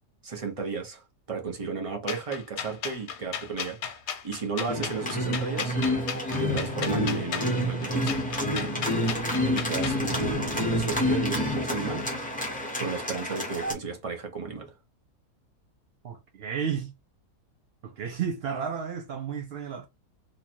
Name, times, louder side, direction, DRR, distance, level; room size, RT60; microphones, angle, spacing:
voice 1, 0.2-1.0 1.3-3.8 4.2-5.8 6.4-8.2 9.5-12.1 12.8-14.7, right 5 dB, 25° right, 0.8 m, -33 dB
sound 1, 2.1-10.0, left 7 dB, 80° left, 1.3 m, -35 dB
sound 2, 4.7-13.7, left 1 dB, 5° left, 0.7 m, -28 dB
voice 2, 16.0-16.9 17.8-19.9, right 7 dB, 75° right, 0.5 m, -32 dB
3.0 x 2.5 x 4.4 m
omnidirectional pair, 1.7 m